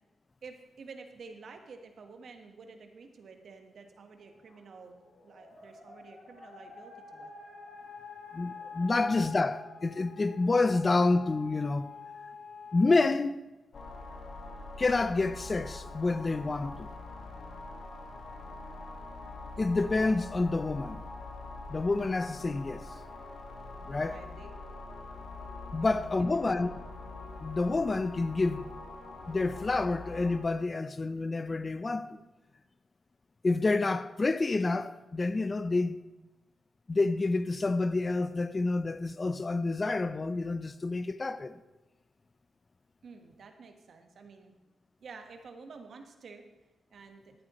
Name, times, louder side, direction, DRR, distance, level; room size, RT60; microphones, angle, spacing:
voice 1, 0.4-7.3 8.8-8.9 9.2-9.3 24.0-24.5 25.8-26.8 43.0-44.5 45.0-46.4 46.9-47.3, right 4 dB, 65° right, 1.4 m, -50 dB
sound 1, 4.2-13.1, left 5 dB, 80° left, 4.3 m, -47 dB
voice 2, 8.3-11.9 12.7-13.4 14.8-16.9 19.6-21.0 21.7-22.9 23.9-24.2 25.7-26.8 27.4-28.7 29.3-32.2 33.4-36.0 36.9-41.6, left 3 dB, 40° left, 0.6 m, -28 dB
sound 2, 13.7-30.4, left 3 dB, 60° left, 1.6 m, -44 dB
14.5 x 10.5 x 3.1 m
supercardioid pair, 50°, 0 cm